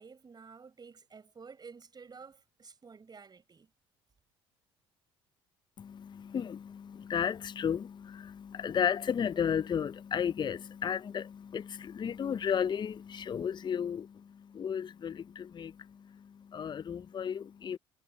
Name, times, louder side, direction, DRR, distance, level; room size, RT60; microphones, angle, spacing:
voice 1, 0.0-3.7, right 5 dB, 30° right, 4.9 m, -51 dB
voice 2, 5.8-17.8, left 8 dB, 35° left, 0.7 m, -34 dB
hypercardioid pair, 60°, 13 cm